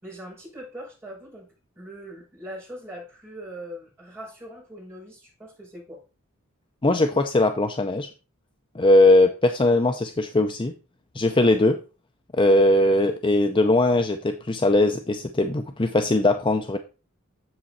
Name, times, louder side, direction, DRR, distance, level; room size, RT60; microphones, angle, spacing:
voice 1, 0.0-6.0, equal, 10° right, -7 dB, 5.9 m, -41 dB
voice 2, 6.8-8.1 8.7-10.7 11.1-11.8 12.3-16.8, left 2 dB, 25° left, 6 dB, 0.6 m, -20 dB
7.8 x 7.5 x 4.2 m, 0.33 s
head